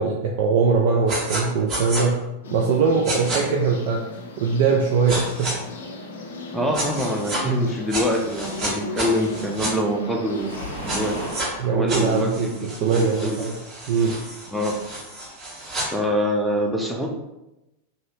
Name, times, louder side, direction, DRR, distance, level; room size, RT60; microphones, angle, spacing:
voice 1, 0.0-2.2 2.5-4.0 4.4-5.5 11.6-13.5 13.9-14.2, right 5 dB, 50° right, -1 dB, 0.4 m, -21 dB
sound 1, 1.1-1.4 1.7-2.0 3.0-3.4 5.1-5.5 6.7-7.4 7.9-9.7 10.9-11.5 11.9-15.9, right 1 dB, 35° right, 1.4 m, -30 dB
sound 2, 2.4-11.4, left 3 dB, 60° left, 0.5 m, -37 dB
voice 2, 6.5-11.2 11.7-13.4 14.5-14.8 15.8-17.1, equal, ahead, 0 dB, 0.5 m, -25 dB
Waves surf, 10.2-11.7, right 1 dB, 90° right, 1.1 m, -34 dB
2.8 x 2.6 x 3.2 m, 0.94 s
figure-of-eight pair, 90°, 0 cm